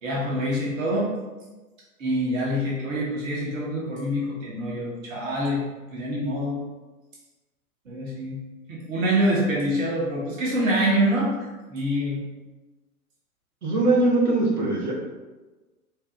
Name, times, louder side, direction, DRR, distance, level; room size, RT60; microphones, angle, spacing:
voice 1, 0.0-1.1 2.0-5.6 5.9-6.6 7.9-8.4 8.7-11.3 11.7-12.2, equal, 60° right, -4 dB, 1.1 m, -25 dB
voice 2, 13.6-14.9, right 2 dB, 80° right, -5 dB, 1.3 m, -21 dB
4.6 x 2.1 x 3.6 m, 1.2 s
figure-of-eight pair, 100°, 44 cm